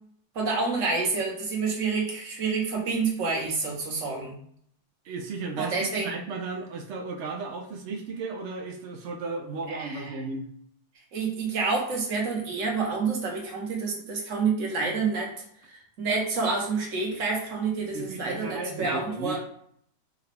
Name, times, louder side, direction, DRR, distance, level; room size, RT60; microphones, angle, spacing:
voice 1, 0.3-4.4 5.6-6.1 9.7-10.1 11.1-19.4, right 4 dB, 55° right, -1 dB, 1.2 m, -28 dB
voice 2, 5.0-10.5 17.9-19.4, right 3 dB, 75° right, 3 dB, 0.6 m, -35 dB
4.9 x 2.3 x 3.3 m, 0.64 s
omnidirectional pair, 1.8 m